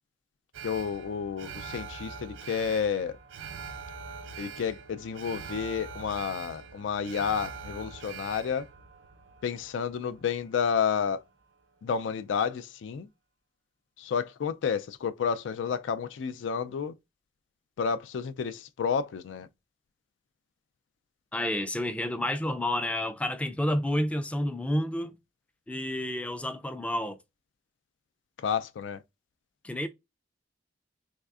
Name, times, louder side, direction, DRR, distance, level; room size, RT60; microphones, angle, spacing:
Alarm, 0.5-10.8 11.1-11.2, right 6 dB, 80° right, 0.5 m, -43 dB
voice 1, 0.6-3.2 4.4-8.7 9.4-11.2 11.8-13.1 14.0-16.9 17.8-19.5 28.4-29.0, left 6 dB, 85° left, 0.3 m, -30 dB
voice 2, 21.3-25.1 25.7-27.2 29.6-29.9, left 1 dB, 5° left, 0.3 m, -30 dB
3.5 x 3.2 x 2.4 m
head